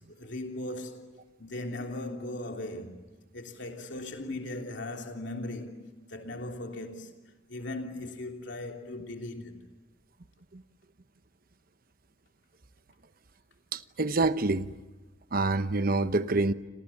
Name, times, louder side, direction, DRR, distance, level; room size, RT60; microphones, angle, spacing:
voice 1, 0.0-9.6, left 2 dB, 60° left, 3.2 m, -39 dB
voice 2, 13.7-14.7 15.3-16.5, right 3 dB, 45° right, 0.9 m, -26 dB
29.5 x 27.0 x 7.2 m
head